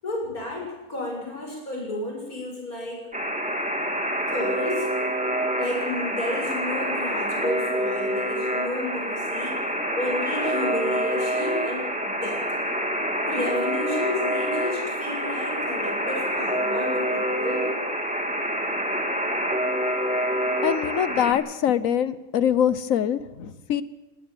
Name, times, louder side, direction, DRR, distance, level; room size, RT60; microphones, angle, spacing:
voice 1, 0.0-3.0 4.3-4.9 5.6-12.4 13.3-17.7, left 1 dB, 85° left, -1 dB, 7.6 m, -32 dB
Alarm, 3.1-21.3, equal, 5° right, 2.3 m, -27 dB
voice 2, 20.6-23.8, left 9 dB, 70° left, 15 dB, 1.4 m, -24 dB
20.0 x 18.0 x 7.9 m, 1.1 s
omnidirectional pair, 1.5 m